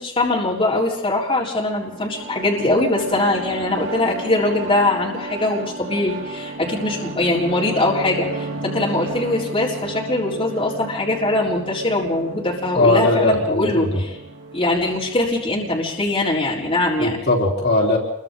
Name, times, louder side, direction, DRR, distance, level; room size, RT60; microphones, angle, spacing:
voice 1, 0.0-14.1 14.5-17.2, left 2 dB, 25° left, -4 dB, 4.2 m, -22 dB
sound 1, 1.6-17.0, right 2 dB, 60° right, 3.2 m, -34 dB
voice 2, 12.7-14.0 17.0-18.0, left 2 dB, 55° left, -3 dB, 3.9 m, -18 dB
28.0 x 23.5 x 3.9 m, 0.78 s
head